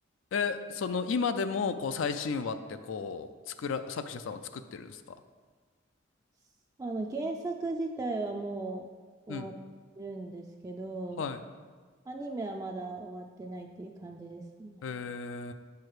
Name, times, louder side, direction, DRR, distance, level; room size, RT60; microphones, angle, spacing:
voice 1, 0.3-5.2 9.3-9.5 11.2-11.4 14.8-15.5, left 5 dB, 75° left, 10 dB, 0.4 m, -33 dB
voice 2, 6.8-8.8 9.3-9.5 10.0-11.3 12.1-14.8, right 2 dB, 20° right, 2 dB, 0.3 m, -37 dB
7.2 x 4.7 x 4.7 m, 1.5 s
head